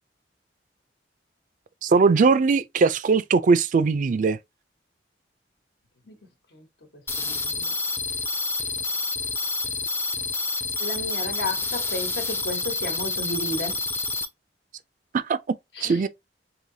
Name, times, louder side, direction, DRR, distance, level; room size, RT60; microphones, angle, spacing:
voice 1, 1.8-4.4 15.1-15.4 15.8-16.1, right 4 dB, 50° right, 0.3 m, -20 dB
sound 1, 7.1-14.3, left 3 dB, 15° left, 0.5 m, -28 dB
voice 2, 7.2-7.7 10.8-13.8 15.8-16.0, left 2 dB, 70° left, 1.2 m, -33 dB
4.8 x 2.9 x 2.7 m
head